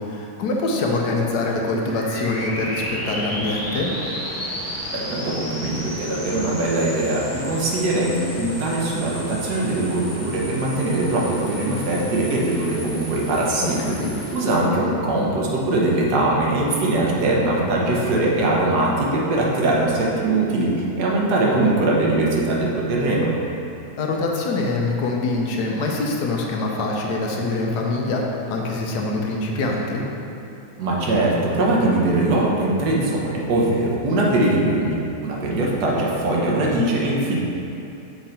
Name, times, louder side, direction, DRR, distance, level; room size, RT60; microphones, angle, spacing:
voice 1, 0.0-3.9 13.6-14.1 24.0-28.2 28.5-30.0, left 2 dB, 80° left, -1 dB, 1.3 m, -24 dB
sound 1, 1.9-14.6, equal, 10° left, 1.0 m, -33 dB
voice 2, 4.9-13.9 14.3-23.3 30.8-37.4, right 2 dB, 80° right, -3 dB, 1.5 m, -21 dB
6.5 x 3.8 x 4.3 m, 2.7 s
omnidirectional pair, 1.7 m